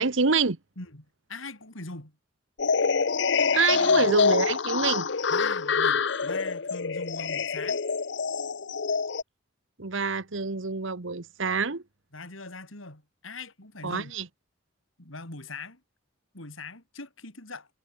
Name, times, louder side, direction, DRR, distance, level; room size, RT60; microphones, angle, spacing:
voice 1, 0.0-0.6 3.5-5.1 9.8-11.8 13.8-14.3, right 4 dB, 75° right, 1.2 m, -26 dB
voice 2, 0.8-2.1 3.7-4.1 5.3-7.8 12.1-14.1 15.0-15.8 16.3-17.7, left 3 dB, 80° left, 5.0 m, -42 dB
sound 1, 2.6-9.2, left 5 dB, 60° left, 0.8 m, -26 dB
head